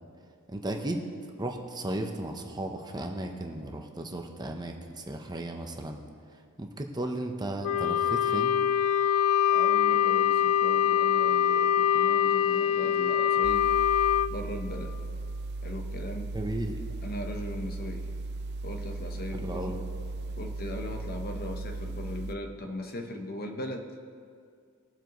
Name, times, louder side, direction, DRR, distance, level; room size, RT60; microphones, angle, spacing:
voice 1, 0.5-1.0 1.4-6.0 6.6-8.6 16.3-16.8 19.3-19.8, right 1 dB, 20° right, 3 dB, 0.8 m, -35 dB
Wind instrument woodwind instrument, 7.6-14.3, left 9 dB, 80° left, 0.4 m, -24 dB
voice 2, 9.5-14.0 14.3-14.9 15.6-16.3 17.0-18.1 18.6-19.8 20.4-23.9, left 1 dB, 45° left, 4 dB, 1.0 m, -38 dB
sound 1, 13.4-22.4, right 2 dB, 50° right, 0.5 m, -37 dB
20.5 x 7.5 x 3.1 m, 2.3 s
head